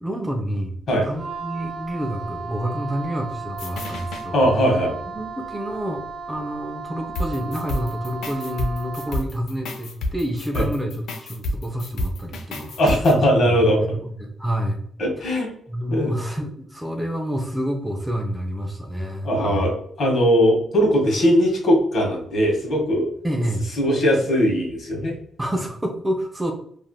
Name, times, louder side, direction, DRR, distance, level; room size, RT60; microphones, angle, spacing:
voice 1, 0.0-4.5 5.1-12.8 13.4-14.9 15.2-15.3 15.7-19.7 23.2-23.7 25.4-26.5, equal, 10° right, 2 dB, 0.4 m, -28 dB
Wind instrument woodwind instrument, 1.1-9.3, right 4 dB, 45° right, 0.8 m, -35 dB
sound 1, 3.5-4.3 7.1-13.1, left 1 dB, 80° left, 0.5 m, -30 dB
voice 2, 4.3-5.0 10.5-10.7 12.8-14.0 15.0-15.5 15.9-16.2 19.2-19.7 20.0-23.1 23.8-25.2, equal, 60° left, 0 dB, 1.2 m, -19 dB
3.2 x 2.4 x 2.3 m, 0.64 s
cardioid pair, 130°, 0 cm